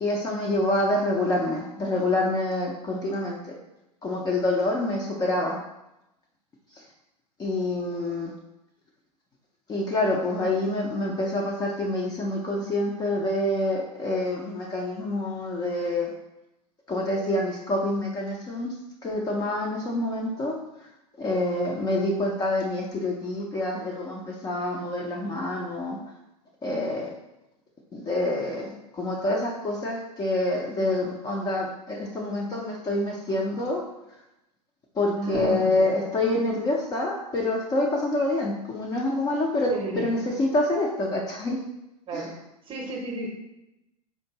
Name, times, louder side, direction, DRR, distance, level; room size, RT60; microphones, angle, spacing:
voice 1, 0.0-3.6 4.0-5.6 6.7-6.8 7.4-8.3 9.7-16.1 16.9-18.7 19.0-20.5 21.2-26.0 26.6-27.1 27.9-33.8 34.9-39.7 40.0-41.6 42.1-42.3, left 1 dB, 20° left, -2 dB, 0.5 m, -27 dB
voice 2, 35.1-35.9 39.7-40.1 42.1-42.3 42.7-43.3, right 2 dB, 25° right, 0 dB, 0.8 m, -32 dB
4.4 x 2.5 x 2.8 m, 0.89 s
figure-of-eight pair, 100°, 21 cm